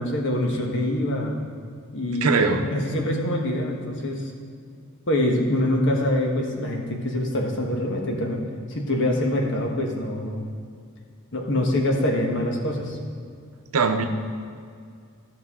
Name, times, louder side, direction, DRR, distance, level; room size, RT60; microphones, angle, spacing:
voice 1, 0.0-1.4 1.9-4.3 5.1-8.4 8.7-10.5 11.3-13.0, left 1 dB, 55° left, 1 dB, 1.3 m, -25 dB
voice 2, 2.2-2.7 13.7-14.0, right 4 dB, 75° right, 6 dB, 0.7 m, -21 dB
14.0 x 6.5 x 3.7 m, 2.3 s
head